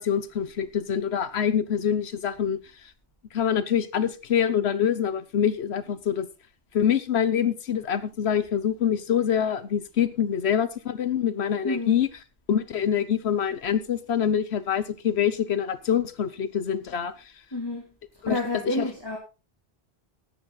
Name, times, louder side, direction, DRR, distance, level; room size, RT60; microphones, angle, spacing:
voice 1, 0.0-2.9 3.3-6.3 6.7-12.1 12.5-17.1 18.2-18.4 18.7-18.9, left 8 dB, 80° left, 13 dB, 1.1 m, -25 dB
voice 2, 11.6-11.9 17.5-17.8 18.2-19.2, left 1 dB, 20° left, -1 dB, 2.8 m, -29 dB
14.5 x 10.0 x 4.0 m, 0.31 s
omnidirectional pair, 1.1 m